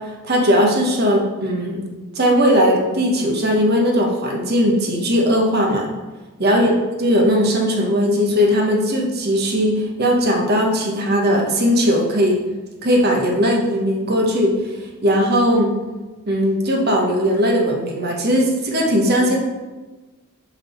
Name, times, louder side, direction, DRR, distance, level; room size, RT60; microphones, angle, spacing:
voice 1, 0.2-1.8 2.1-5.9 6.4-6.7 7.0-12.4 12.8-14.5 15.0-15.7 16.3-19.4, equal, 50° right, 0 dB, 1.1 m, -18 dB
7.1 x 3.8 x 4.3 m, 1.2 s
head